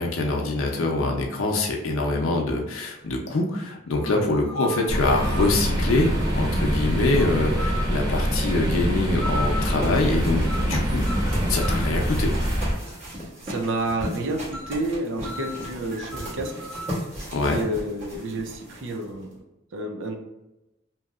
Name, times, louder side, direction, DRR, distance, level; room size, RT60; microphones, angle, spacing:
voice 1, 0.0-11.1 11.5-12.3 17.3-17.6, left 2 dB, 85° left, 2 dB, 0.6 m, -24 dB
sound 1, 3.0-3.1 4.0-5.6 7.6-8.0 9.2-9.7 10.4-10.8 11.0-11.9 14.5-14.8 15.2-17.0, equal, 5° left, 0.3 m, -36 dB
sound 2, 4.9-12.7, equal, 20° right, 0.7 m, -24 dB
sound 3, 9.8-19.3, equal, 35° right, 1.1 m, -35 dB
voice 2, 13.1-16.5 17.5-19.3 19.7-20.2, right 2 dB, 65° right, 4 dB, 0.5 m, -30 dB
2.9 x 2.7 x 2.4 m, 0.96 s
head